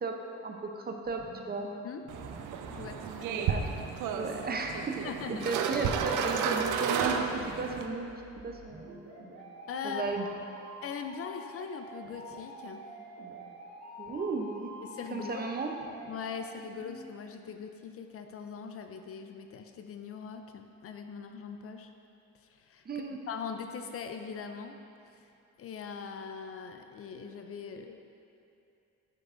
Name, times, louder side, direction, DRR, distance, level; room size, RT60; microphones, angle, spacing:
voice 1, 0.0-1.7 3.0-3.7 4.2-5.1 5.5-7.2 7.6-8.1 8.4-9.1 9.8-10.3 14.0-14.7 15.1-15.7 22.9-23.2, right 3 dB, 30° right, 3 dB, 0.6 m, -34 dB
sound 1, 1.0-17.1, right 1 dB, 60° right, 1.3 m, -48 dB
sound 2, 2.1-7.9, right 7 dB, 80° right, 0.5 m, -32 dB
voice 2, 2.7-3.5 5.0-5.5 9.7-10.0 10.8-12.8 14.9-15.4 16.1-21.9 22.5-24.7 25.6-28.0, left 6 dB, 50° left, 6 dB, 0.4 m, -41 dB
7.8 x 5.4 x 2.5 m, 2.7 s
cardioid pair, 90°, 30 cm